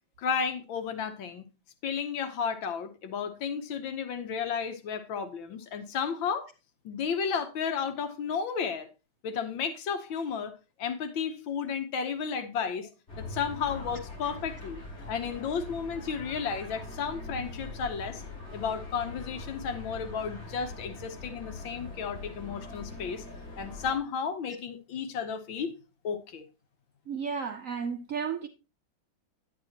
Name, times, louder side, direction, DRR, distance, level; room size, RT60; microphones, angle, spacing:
voice 1, 0.2-1.5 1.8-6.5 6.8-8.9 9.2-10.5 10.8-12.9 13.2-14.8 15.1-18.2 18.5-23.2 23.6-25.7 26.0-26.4, left 6 dB, 75° left, 1.7 m, -33 dB
sound 1, 13.1-24.0, left 3 dB, 35° left, 6.0 m, -42 dB
voice 2, 27.1-28.5, right 6 dB, 70° right, 0.7 m, -33 dB
10.5 x 9.3 x 2.8 m
omnidirectional pair, 2.1 m